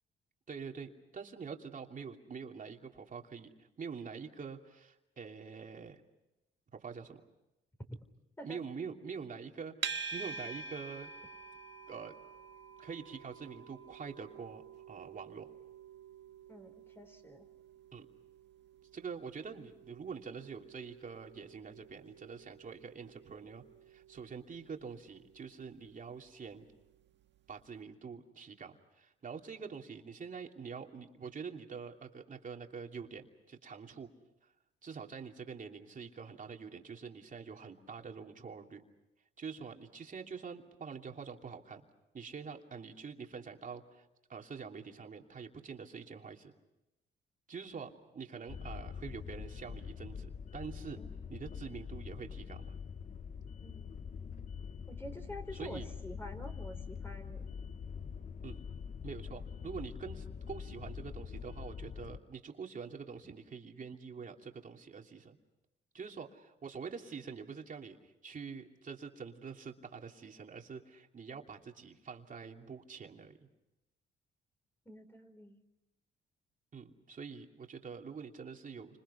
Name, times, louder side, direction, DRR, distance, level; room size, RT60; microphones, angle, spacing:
voice 1, 0.5-6.0 6.7-7.2 8.4-11.1 11.9-12.2 12.8-14.6 14.9-15.5 17.9-18.1 18.9-26.7 27.5-34.1 34.8-38.8 39.4-41.8 42.1-44.0 44.3-46.5 47.5-51.0 51.3-52.7 55.5-55.9 58.4-58.6 59.0-65.4 65.9-73.5 76.7-79.0, right 5 dB, 40° right, 2 dB, 2.9 m, -46 dB
sound 1, 9.8-27.0, right 5 dB, 65° right, 1.5 m, -48 dB
voice 2, 16.5-17.5 51.0-51.2 53.6-53.9 54.9-57.5 74.9-75.6, equal, 10° left, 5 dB, 4.2 m, -48 dB
sound 2, 48.5-62.2, left 6 dB, 40° left, 0.8 m, -44 dB
30.0 x 26.5 x 5.8 m, 0.95 s
cardioid pair, 90°, 20 cm